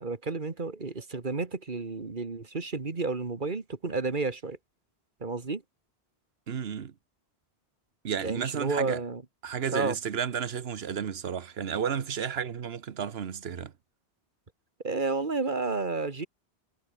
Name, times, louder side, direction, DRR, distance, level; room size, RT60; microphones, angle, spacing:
voice 1, 0.0-4.6 5.2-5.6 8.2-9.2 9.7-10.0 14.8-16.3, right 3 dB, 50° right, 1.9 m, -31 dB
voice 2, 6.5-6.9 8.0-9.0 9.4-13.7, right 7 dB, 70° right, 1.3 m, -32 dB
omnidirectional pair, 1.1 m